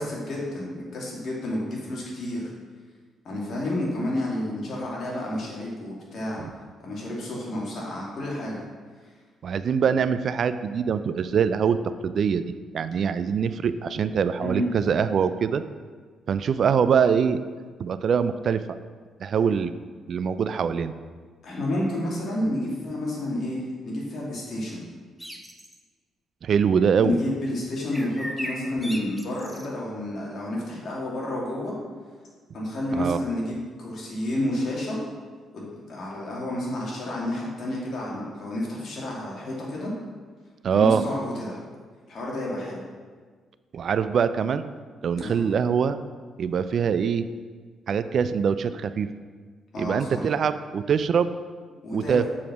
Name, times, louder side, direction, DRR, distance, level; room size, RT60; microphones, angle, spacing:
voice 1, 0.0-2.5 3.2-6.4 6.8-8.6 14.4-14.7 21.4-24.8 27.0-31.8 32.5-35.0 35.5-39.9 40.7-41.6 42.1-42.8 45.2-45.4 49.7-50.2 51.8-52.2, left 1 dB, 55° left, -4 dB, 2.6 m, -30 dB
voice 2, 9.4-12.4 12.7-15.6 16.3-17.4 17.8-18.8 19.2-19.7 20.1-20.9 26.4-27.2 33.0-33.2 40.6-41.0 43.7-44.6 45.0-46.0 46.4-47.3 47.9-49.1 49.8-51.3 51.9-52.2, right 7 dB, 55° right, 12 dB, 0.3 m, -23 dB
sound 1, 25.2-25.8 27.9-29.7, equal, ahead, 0.8 m, -37 dB
7.1 x 4.8 x 6.1 m, 1.5 s
cardioid pair, 90°, 0 cm